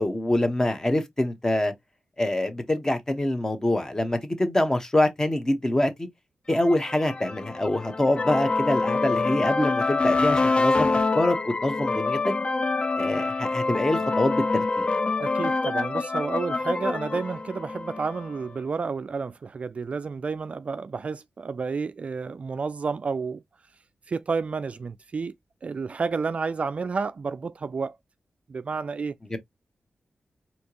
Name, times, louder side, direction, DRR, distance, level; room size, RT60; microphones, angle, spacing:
voice 1, 0.0-1.7 2.2-6.1 6.5-12.3 13.0-14.9 29.3-29.4, left 1 dB, 20° left, 1.0 m, -25 dB
sound 1, 6.6-18.4, left 3 dB, 35° left, 0.4 m, -26 dB
voice 2, 15.2-23.4 24.1-25.3 25.6-28.0 28.5-29.1, right 4 dB, 45° right, 0.3 m, -30 dB
4.3 x 2.8 x 2.9 m
wide cardioid pair, 105°, 3 cm